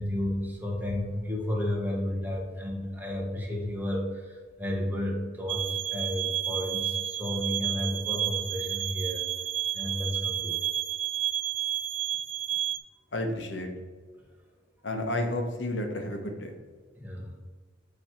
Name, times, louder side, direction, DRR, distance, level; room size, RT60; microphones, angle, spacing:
voice 1, 0.0-9.2 9.7-10.6 16.9-17.4, left 1 dB, 10° right, -1 dB, 1.2 m, -32 dB
sound 1, 5.5-12.8, right 11 dB, 75° right, 0.4 m, -31 dB
voice 2, 13.1-13.7 14.8-16.5, left 1 dB, 75° left, 4 dB, 1.1 m, -31 dB
8.5 x 3.1 x 4.3 m, 1.5 s
head